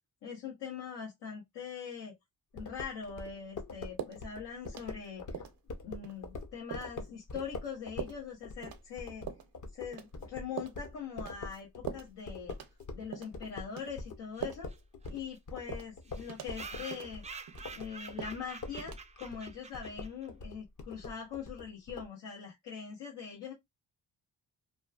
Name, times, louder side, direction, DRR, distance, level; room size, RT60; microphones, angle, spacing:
voice 1, 0.2-2.1 2.5-5.4 5.8-9.3 9.7-12.5 12.9-14.7 15.1-17.2 17.7-23.5, left 7 dB, 85° left, 1.0 m, -42 dB
sound 1, 2.6-13.1 13.3-22.1, left 3 dB, 45° left, 0.8 m, -44 dB
sound 2, 4.0-4.2 4.6-5.1 5.3-5.6 6.0-6.2 6.7-6.9 7.3-7.5 8.0-8.2 8.6-8.8 9.3-9.5 9.9-10.2 10.6-10.8 11.3-11.6 11.9-12.1 12.5-12.8 13.1-13.4 13.8-13.9 14.4-14.8 15.1-15.2 15.7-15.9 16.3-16.5 16.9-17.1 17.5-17.8 18.2-18.4 18.8-19.0, right 9 dB, 55° right, 0.7 m, -42 dB
sound 3, 14.3-14.4 14.7-14.8 15.0-15.1 15.3-15.4 16.0-20.3, right 4 dB, 15° right, 0.4 m, -48 dB
3.0 x 2.3 x 2.3 m
cardioid pair, 70°, 41 cm